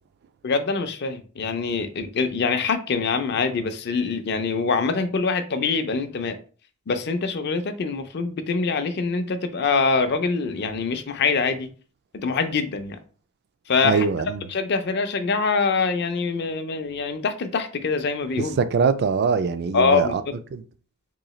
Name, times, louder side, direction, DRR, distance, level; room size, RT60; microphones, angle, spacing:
voice 1, 0.4-6.4 6.9-11.7 12.1-13.0 13.7-14.1 14.5-18.6 19.7-20.3, left 4 dB, 50° left, 0.5 m, -24 dB
voice 2, 13.8-14.5 18.4-20.2 20.5-20.6, right 5 dB, 50° right, 0.3 m, -23 dB
3.8 x 2.7 x 3.1 m
head